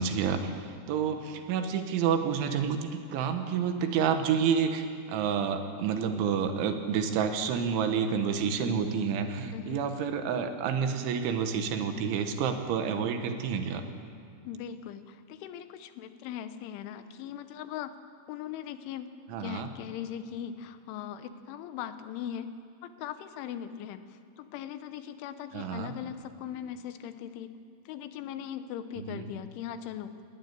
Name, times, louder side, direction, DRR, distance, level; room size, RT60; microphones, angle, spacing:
voice 1, 0.0-13.8 19.3-19.7 25.5-25.9 29.1-29.2, right 7 dB, 80° right, 7 dB, 3.8 m, -29 dB
voice 2, 14.4-17.9 18.3-19.1 19.4-22.5 22.8-27.5 27.9-30.1, left 10 dB, 85° left, 10 dB, 3.4 m, -39 dB
20.0 x 16.5 x 9.5 m, 2.4 s
omnidirectional pair, 5.4 m